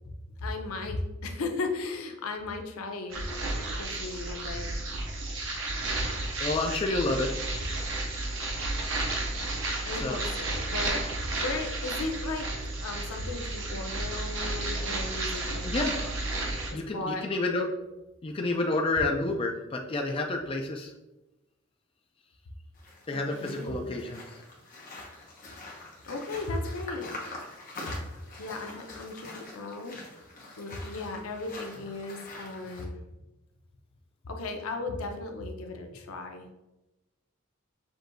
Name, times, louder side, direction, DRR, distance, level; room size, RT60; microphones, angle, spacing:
voice 1, 0.4-3.3 3.8-4.7 9.8-11.0 11.3-15.7 16.7-17.3 23.1-23.9 26.1-27.1 27.9-28.0 28.4-30.0 30.6-33.0 34.2-36.5, left 3 dB, 90° left, 4 dB, 0.6 m, -36 dB
sound 1, 3.1-16.7, right 2 dB, 65° right, 0.8 m, -32 dB
voice 2, 6.4-7.3 10.0-10.2 15.6-15.9 16.7-17.7 18.2-20.9 23.1-24.2, left 2 dB, 25° left, 2 dB, 0.3 m, -29 dB
sound 2, 22.7-32.8, left 2 dB, 40° left, 0.9 m, -44 dB
5.9 x 2.6 x 2.6 m, 1.0 s
head